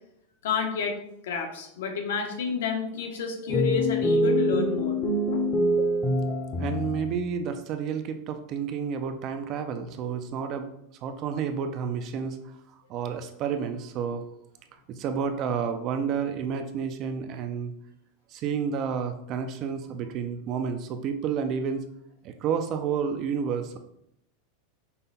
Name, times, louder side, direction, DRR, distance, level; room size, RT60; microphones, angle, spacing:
voice 1, 0.4-1.0 1.2-5.0 5.3-5.4, left 5 dB, 80° left, 4 dB, 0.9 m, -30 dB
sound 1, 3.5-7.2, equal, 15° left, 0.6 m, -25 dB
voice 2, 6.6-10.7 11.0-12.5 12.9-14.2 14.9-17.7 18.3-21.8 22.2-23.8, right 6 dB, 30° right, 8 dB, 0.4 m, -30 dB
5.4 x 2.2 x 4.0 m, 0.76 s
supercardioid pair, 165°, 0 cm